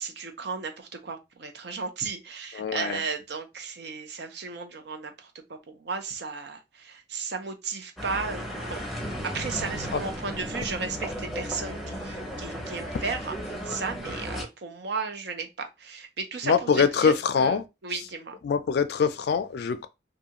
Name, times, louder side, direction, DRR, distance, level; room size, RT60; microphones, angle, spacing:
voice 1, 0.0-8.9 9.2-18.4, right 5 dB, 70° right, 0.6 m, -35 dB
voice 2, 2.5-3.0 9.9-10.0 16.4-17.6 18.4-19.9, left 6 dB, 65° left, 0.3 m, -24 dB
sound 1, 8.0-14.4, equal, ahead, 0.7 m, -35 dB
2.7 x 2.3 x 2.8 m
head